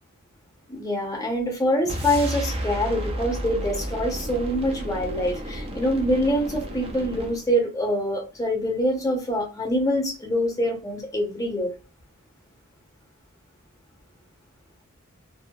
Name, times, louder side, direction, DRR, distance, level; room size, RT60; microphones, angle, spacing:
voice 1, 0.7-11.7, equal, 15° left, 0 dB, 0.8 m, -25 dB
sound 1, 1.8-7.5, right 1 dB, 25° right, 0.4 m, -32 dB
2.7 x 2.1 x 2.3 m, 0.31 s
head